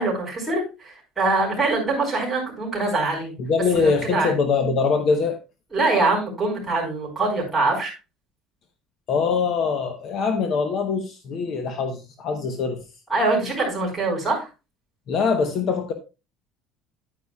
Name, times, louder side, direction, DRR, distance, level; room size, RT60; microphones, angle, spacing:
voice 1, 0.0-3.3 3.7-4.3 5.7-7.9 13.1-14.5, right 3 dB, 5° right, -4 dB, 4.7 m, -23 dB
voice 2, 3.4-5.4 9.1-12.8 15.1-15.9, left 5 dB, 40° left, 6 dB, 0.9 m, -23 dB
10.0 x 9.4 x 2.3 m, 0.29 s
cardioid pair, 175°, 0 cm